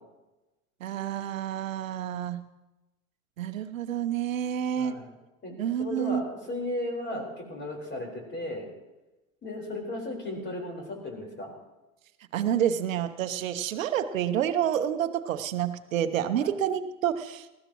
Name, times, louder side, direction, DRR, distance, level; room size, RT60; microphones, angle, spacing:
voice 1, 0.8-2.5 3.4-4.9 5.6-6.2 12.3-17.5, right 10 dB, 80° right, 11 dB, 0.9 m, -28 dB
voice 2, 4.8-5.1 5.4-8.7 9.4-11.5 16.4-16.5, left 1 dB, 30° left, 1 dB, 4.4 m, -35 dB
19.5 x 15.0 x 3.0 m, 1.0 s
hypercardioid pair, 80°, 39 cm